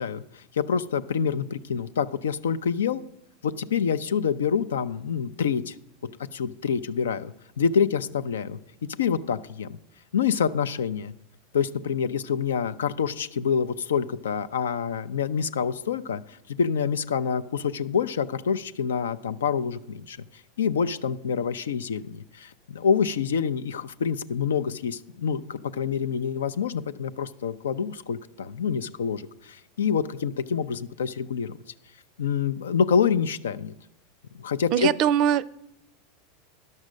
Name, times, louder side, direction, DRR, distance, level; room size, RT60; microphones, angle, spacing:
voice 1, 0.0-3.0 3.4-5.7 6.3-8.6 9.0-9.8 10.1-11.1 11.5-16.2 16.5-20.2 20.6-31.6 32.2-33.7 34.4-34.9, left 7 dB, 90° left, 14 dB, 0.4 m, -27 dB
voice 2, 34.7-35.5, right 10 dB, 50° right, 19 dB, 0.4 m, -22 dB
10.5 x 6.4 x 6.2 m, 0.85 s
hypercardioid pair, 105°, 0 cm